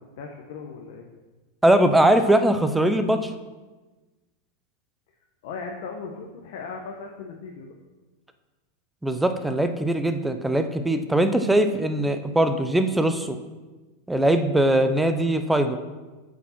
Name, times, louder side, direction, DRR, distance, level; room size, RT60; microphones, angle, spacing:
voice 1, 0.2-1.1 5.4-7.7, left 4 dB, 65° left, 1 dB, 1.0 m, -37 dB
voice 2, 1.6-3.3 9.0-13.4 14.1-15.8, right 1 dB, 5° right, 8 dB, 0.5 m, -21 dB
8.0 x 5.0 x 5.8 m, 1.2 s
supercardioid pair, 145°, 0 cm